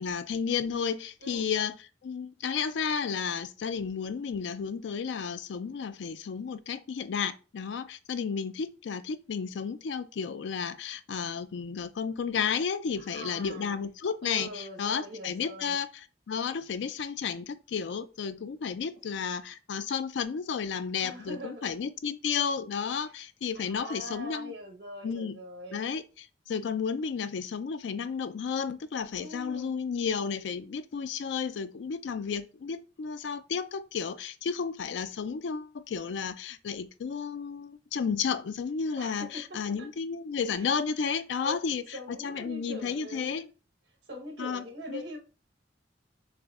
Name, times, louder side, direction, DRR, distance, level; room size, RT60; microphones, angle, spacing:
voice 1, 0.0-1.8 2.0-24.5 25.0-25.4 25.7-43.4 44.4-45.0, left 6 dB, 80° left, 0.4 m, -32 dB
voice 2, 13.0-13.9 14.2-15.8 21.0-21.8 23.0-23.1 23.5-25.8 29.1-29.8 39.0-39.9 40.5-40.7 41.1-41.6 41.9-43.5 44.1-45.2, equal, 75° right, 1.1 m, -43 dB
6.5 x 2.6 x 2.4 m
head